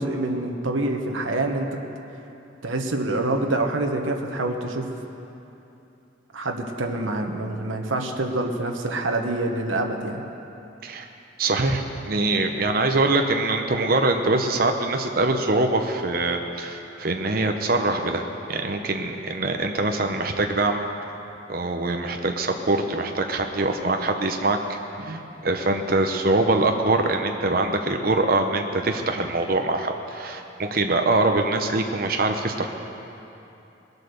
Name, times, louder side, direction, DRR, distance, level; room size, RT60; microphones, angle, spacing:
voice 1, 0.0-1.8 2.6-4.9 6.3-10.2 25.1-25.2, right 2 dB, 90° right, 3 dB, 1.2 m, -26 dB
voice 2, 11.4-18.2 18.5-20.8 21.5-32.7, right 2 dB, 50° right, 4 dB, 0.8 m, -23 dB
20.0 x 8.2 x 6.8 m, 2.9 s
head